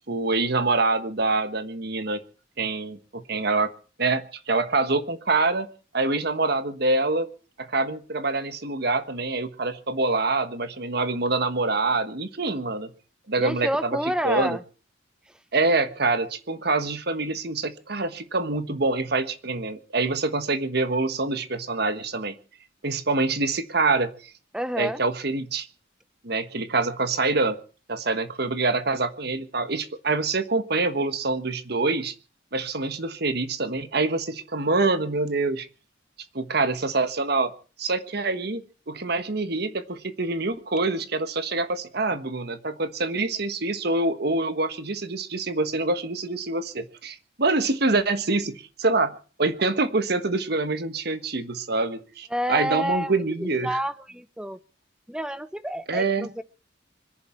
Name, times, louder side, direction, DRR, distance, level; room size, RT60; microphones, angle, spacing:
voice 1, 0.1-2.2 2.6-3.7 4.0-5.7 5.9-7.3 7.6-12.9 13.3-14.0 14.2-14.6 15.5-22.3 22.8-24.3 24.8-25.7 26.2-27.6 27.9-32.1 32.5-35.7 36.3-37.5 37.8-38.6 38.9-53.8 55.9-56.3, right 3 dB, 55° right, 11 dB, 1.4 m, -25 dB
voice 2, 13.4-14.6 24.5-25.0 52.3-53.1 53.4-54.6 55.1-56.4, equal, 5° right, 14 dB, 0.8 m, -29 dB
25.0 x 11.0 x 4.5 m, 0.38 s
head